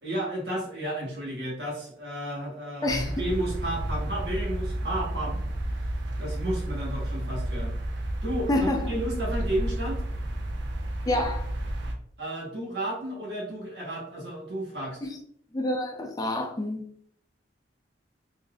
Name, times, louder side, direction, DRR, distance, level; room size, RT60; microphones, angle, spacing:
voice 1, 0.0-5.4 6.2-7.8 8.2-10.0 12.2-15.0, right 1 dB, 70° right, -3 dB, 1.2 m, -32 dB
sound 1, 2.9-11.9, right 1 dB, 85° right, 0.5 m, -31 dB
voice 2, 8.5-8.9 11.1-11.4 15.0-15.2 15.5-16.9, left 1 dB, 20° left, 2 dB, 0.4 m, -28 dB
3.9 x 2.5 x 2.3 m, 0.64 s
head